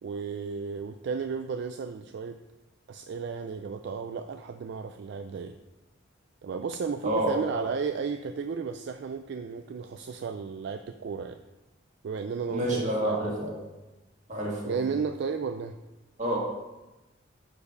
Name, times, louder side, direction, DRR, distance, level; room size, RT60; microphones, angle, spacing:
voice 1, 0.0-2.4 2.9-5.6 6.4-11.4 12.0-13.5 14.6-15.8, right 5 dB, 60° right, 7 dB, 0.3 m, -34 dB
voice 2, 7.0-7.6 12.5-13.6 14.3-14.8 16.2-16.4, right 1 dB, 40° right, -3 dB, 1.9 m, -28 dB
6.6 x 4.8 x 5.2 m, 1.0 s
head